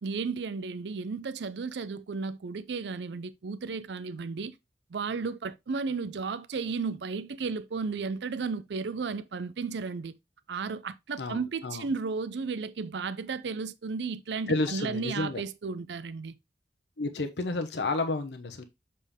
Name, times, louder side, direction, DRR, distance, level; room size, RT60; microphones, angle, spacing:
voice 1, 0.0-4.5 4.9-10.1 10.5-16.3, right 4 dB, 80° right, 0.5 m, -34 dB
voice 2, 11.2-11.8 14.5-15.4 17.0-18.6, left 2 dB, 80° left, 0.9 m, -31 dB
7.1 x 4.3 x 3.5 m
head